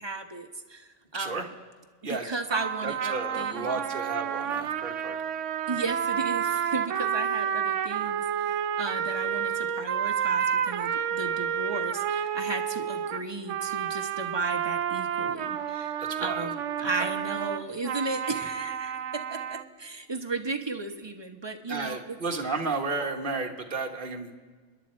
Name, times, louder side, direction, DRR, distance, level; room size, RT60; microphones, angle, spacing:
voice 1, 0.0-1.5 2.0-3.8 5.7-22.2, right 3 dB, 25° right, 5 dB, 0.9 m, -35 dB
voice 2, 1.1-1.5 2.0-2.2 2.8-5.2 16.0-16.5 16.8-16.9 21.7-24.3, right 3 dB, 45° right, 3 dB, 1.4 m, -32 dB
sound 1, 2.5-19.7, right 8 dB, 75° right, 1.0 m, -30 dB
28.5 x 10.5 x 4.4 m, 1.5 s
omnidirectional pair, 1.3 m